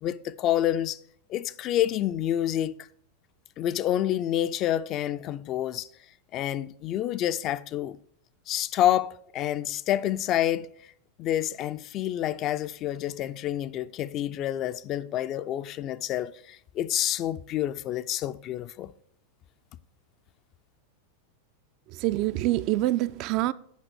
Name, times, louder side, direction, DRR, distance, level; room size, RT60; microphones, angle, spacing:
voice 1, 0.0-1.0 1.3-2.8 3.6-5.9 6.3-8.0 8.5-10.7 11.2-18.9, left 12 dB, 35° left, 0.3 m, -28 dB
voice 2, 21.9-23.5, right 16 dB, 40° right, 0.3 m, -26 dB
8.3 x 5.3 x 6.3 m
figure-of-eight pair, 90°, 0 cm